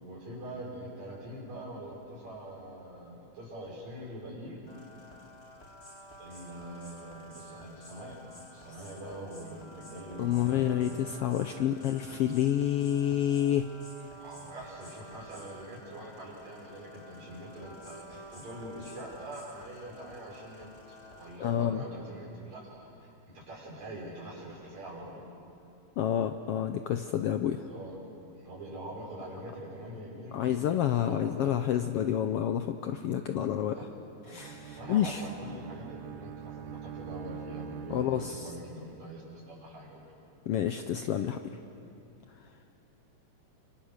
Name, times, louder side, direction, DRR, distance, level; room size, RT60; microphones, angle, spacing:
voice 1, 0.0-4.6 6.2-8.2 8.5-11.0 14.1-25.2 27.7-28.0 28.4-30.3 31.0-31.7 33.7-33.9 34.2-34.4 34.7-40.0, right 1 dB, 65° right, -3 dB, 7.3 m, -44 dB
sound 1, 4.7-21.4, equal, 20° left, 2.5 m, -51 dB
voice 2, 10.2-13.7 21.4-21.8 26.0-27.6 30.3-33.8 34.3-35.2 37.9-38.5 40.5-41.6, left 10 dB, 75° left, 7 dB, 1.4 m, -29 dB
Bowed string instrument, 34.4-38.8, right 8 dB, 85° right, 2.4 m, -44 dB
30.0 x 25.5 x 6.6 m, 2.7 s
omnidirectional pair, 3.4 m